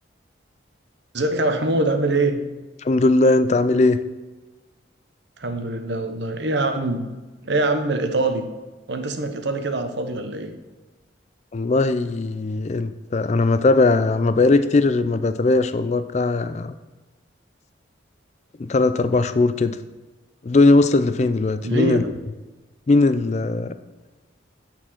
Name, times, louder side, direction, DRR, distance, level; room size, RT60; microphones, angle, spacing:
voice 1, 1.1-2.4 5.4-7.1 7.4-8.5 8.9-10.6 21.6-22.1, right 2 dB, 65° right, 7 dB, 0.9 m, -23 dB
voice 2, 2.8-4.0 11.5-16.7 18.6-19.8 20.4-22.0 22.9-23.7, left 3 dB, 35° left, 12 dB, 0.4 m, -19 dB
8.7 x 4.4 x 7.3 m, 1.2 s
head